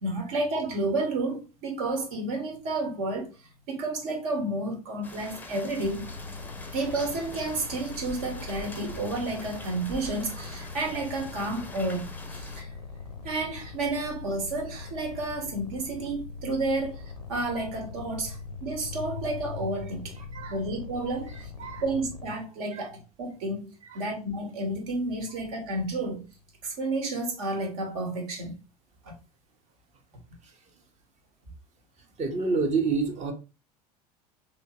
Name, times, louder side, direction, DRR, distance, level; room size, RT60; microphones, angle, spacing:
voice 1, 0.0-3.3 3.7-6.1 6.7-12.7 13.2-17.0 17.3-20.2 20.5-21.5 21.8-23.7 23.9-26.2 26.6-28.5 29.0-29.1, right 2 dB, 60° right, 1.4 m, -31 dB
sound 1, 5.0-12.6, left 3 dB, 10° left, 0.6 m, -44 dB
sound 2, 5.8-22.3, left 4 dB, 85° left, 0.5 m, -42 dB
voice 2, 32.2-33.3, right 4 dB, 35° right, 1.0 m, -28 dB
3.3 x 3.0 x 2.8 m
figure-of-eight pair, 80°, 20 cm